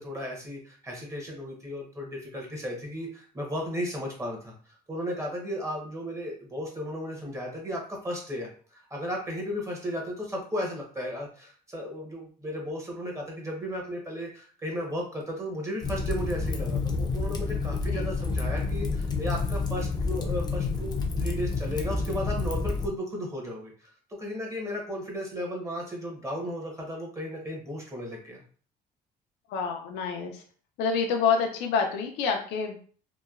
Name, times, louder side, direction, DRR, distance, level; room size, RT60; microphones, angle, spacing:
voice 1, 0.0-28.4, equal, 15° right, -1 dB, 0.9 m, -35 dB
Fire, 15.8-22.9, left 3 dB, 25° left, 0.4 m, -29 dB
voice 2, 29.5-30.4 30.8-32.8, left 6 dB, 85° left, 3 dB, 0.5 m, -27 dB
2.9 x 2.2 x 2.3 m, 0.43 s
cardioid pair, 110°, 17 cm